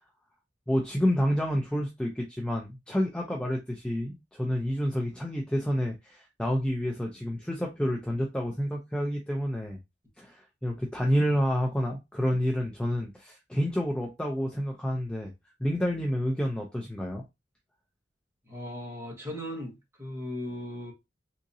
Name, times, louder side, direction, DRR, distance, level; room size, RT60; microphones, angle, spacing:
voice 1, 0.7-9.8 10.2-15.3 15.6-17.2, equal, 5° left, 0.5 m, -29 dB
voice 2, 18.5-20.9, left 1 dB, 15° right, 1.3 m, -37 dB
3.7 x 2.9 x 2.6 m
head